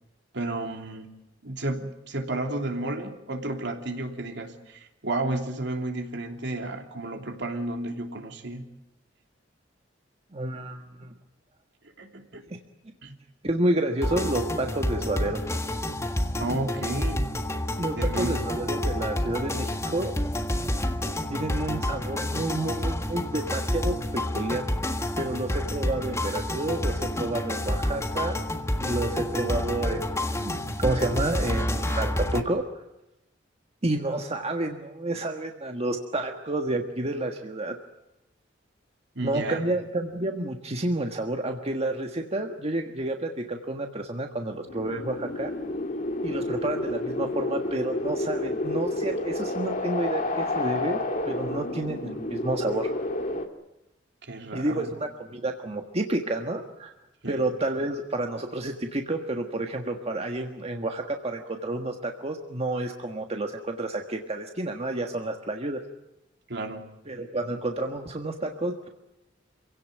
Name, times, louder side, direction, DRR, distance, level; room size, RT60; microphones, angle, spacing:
voice 1, 0.3-1.1 1.4-8.6 12.0-12.4 13.0-13.1 16.4-17.3 18.0-18.5 39.1-39.8 54.3-55.0 57.2-57.5 66.5-66.8, right 2 dB, 65° right, 4 dB, 3.1 m, -32 dB
voice 2, 10.3-11.1 12.5-12.6 13.4-15.4 17.8-20.1 21.3-24.6 25.2-28.4 28.8-32.8 33.8-37.8 39.2-45.5 46.2-51.0 51.3-52.9 54.5-56.9 57.3-65.8 67.1-68.9, right 2 dB, 35° right, 4 dB, 1.6 m, -30 dB
sound 1, 14.0-32.4, left 1 dB, 15° left, 1.6 m, -29 dB
sound 2, 44.7-53.5, left 2 dB, 45° left, 2.1 m, -30 dB
27.0 x 17.0 x 9.2 m, 0.93 s
head